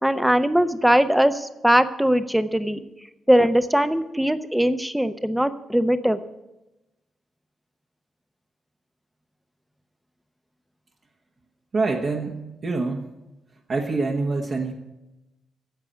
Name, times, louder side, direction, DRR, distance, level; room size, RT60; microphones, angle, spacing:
voice 1, 0.0-2.8 3.3-6.2, equal, 5° right, 11 dB, 0.8 m, -20 dB
voice 2, 11.7-12.4 12.6-13.1 13.7-14.7, right 3 dB, 45° right, 0 dB, 1.3 m, -25 dB
10.5 x 7.4 x 8.3 m, 1.0 s
cardioid pair, 100°, 0 cm